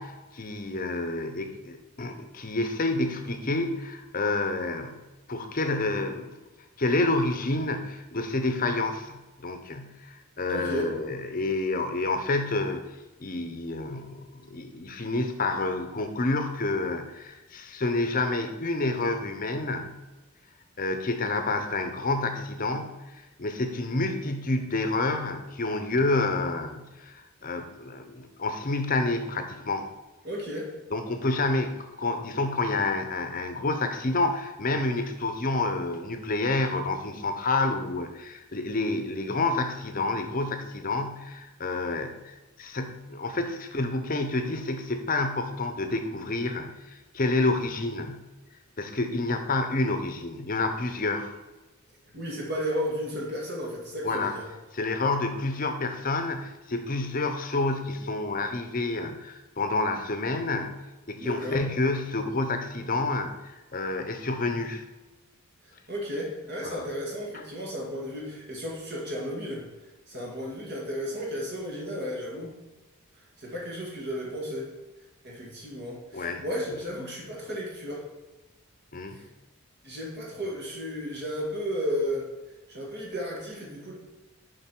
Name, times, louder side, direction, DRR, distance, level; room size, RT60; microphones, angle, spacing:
voice 1, 0.0-4.9 5.3-6.4 6.8-12.9 13.2-20.0 20.8-29.9 30.9-48.3 48.8-51.3 54.0-54.3 54.7-60.8 61.1-64.8 66.6-66.9 76.1-76.4 78.9-79.2, left 2 dB, 40° left, 7 dB, 0.7 m, -29 dB
voice 2, 10.5-10.9 30.2-30.7 52.1-54.4 61.2-61.6 65.6-69.6 70.1-72.5 73.4-74.7 75.2-78.0 79.1-79.3 79.8-82.2 82.7-83.9, equal, 50° right, -2 dB, 2.1 m, -33 dB
7.0 x 5.4 x 4.5 m, 1.1 s
head